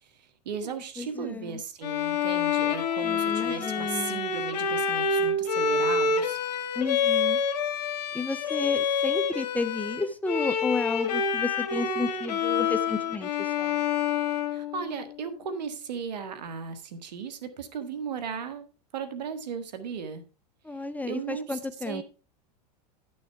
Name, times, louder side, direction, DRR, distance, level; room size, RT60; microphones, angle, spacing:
voice 1, 0.0-6.4 14.5-18.7 18.9-20.2 21.0-21.6 21.8-22.0, right 6 dB, 85° right, 10 dB, 1.6 m, -36 dB
voice 2, 1.0-1.6 3.0-4.2 6.7-7.4 8.1-13.8 20.6-22.0, left 3 dB, 5° left, 12 dB, 0.7 m, -32 dB
Bowed string instrument, 1.8-15.3, left 5 dB, 80° left, 1.5 m, -27 dB
11.0 x 6.3 x 4.6 m, 0.34 s
hypercardioid pair, 110°, 21 cm